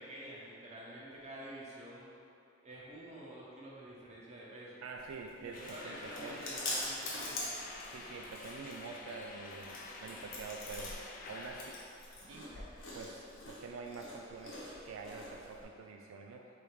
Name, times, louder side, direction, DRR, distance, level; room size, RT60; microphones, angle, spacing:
voice 1, 0.0-2.1 2.6-4.8 5.4-7.4, right 1 dB, 35° right, -6 dB, 0.9 m, -48 dB
voice 2, 4.8-6.4 7.9-10.9 11.3-11.8 12.3-12.5 12.9-16.4, right 4 dB, 85° right, 1 dB, 0.3 m, -46 dB
Chewing mastication, 5.0-15.6, left 2 dB, 70° left, 1.0 m, -45 dB
sound 1, 5.5-11.9, left 3 dB, 45° left, 0.4 m, -49 dB
3.5 x 3.4 x 4.5 m, 2.6 s
head